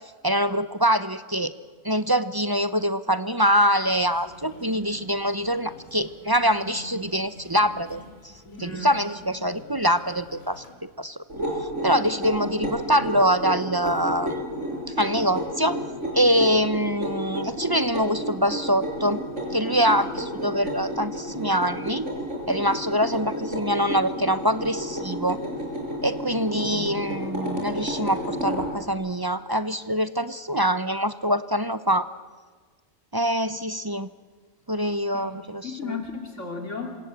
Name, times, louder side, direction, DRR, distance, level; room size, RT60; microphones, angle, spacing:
voice 1, 0.2-1.5 1.8-8.3 8.6-11.2 11.6-14.3 14.9-15.8 16.1-19.2 19.5-22.1 22.5-25.4 26.0-32.1 33.1-34.1 34.7-35.7, equal, 25° right, 13 dB, 0.6 m, -24 dB
sound 1, 3.8-10.7, equal, 85° left, 5.3 m, -46 dB
voice 2, 4.3-4.8 8.6-8.9 26.5-26.9 35.1-35.4 35.6-36.9, left 4 dB, 65° left, 3 dB, 2.9 m, -35 dB
sound 2, 11.3-28.7, equal, 60° right, 7.1 m, -31 dB
27.5 x 26.0 x 8.1 m, 1.5 s
omnidirectional pair, 1.4 m